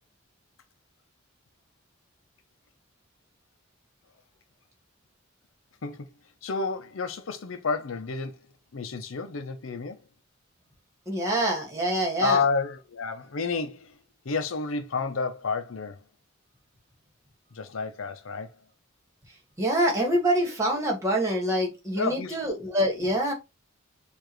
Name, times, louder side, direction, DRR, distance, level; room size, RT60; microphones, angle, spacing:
voice 1, 6.4-8.4 8.7-10.0 12.2-13.9 14.2-16.0 17.5-18.5 22.0-22.4, left 4 dB, 75° left, 0.6 m, -30 dB
voice 2, 11.0-12.4 19.6-23.3, right 1 dB, 15° right, 1.7 m, -25 dB
6.9 x 2.5 x 3.0 m
head